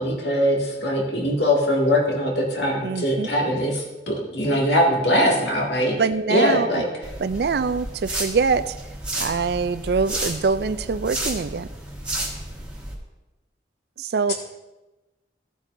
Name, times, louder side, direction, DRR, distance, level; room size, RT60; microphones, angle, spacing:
voice 1, 0.0-6.0 6.3-6.8 14.3-14.4, equal, 80° left, -1 dB, 2.2 m, -21 dB
voice 2, 2.8-3.3 6.0-6.8 7.2-8.8 9.2-11.7 14.0-14.3, right 5 dB, 60° right, 14 dB, 0.4 m, -24 dB
sound 1, 7.0-12.9, right 1 dB, 5° right, 1.4 m, -32 dB
14.5 x 8.2 x 2.6 m, 1.1 s
head